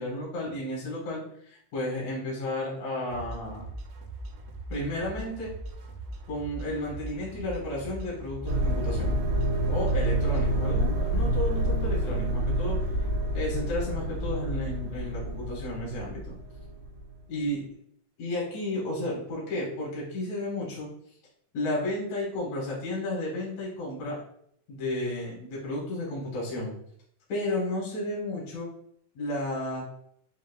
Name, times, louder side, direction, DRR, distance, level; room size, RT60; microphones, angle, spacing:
voice 1, 0.0-3.6 4.7-5.5 6.3-9.2 9.7-12.8 13.3-16.4 17.3-17.6 18.2-20.9 21.5-24.2 24.7-26.7 27.3-28.7 29.1-29.8, left 1 dB, 85° left, -5 dB, 1.6 m, -32 dB
sound 1, 3.1-10.6, right 2 dB, 90° right, 3.2 m, -40 dB
sound 2, 8.5-17.0, right 1 dB, 70° right, 2.5 m, -28 dB
7.2 x 2.6 x 2.2 m, 0.67 s
omnidirectional pair, 5.5 m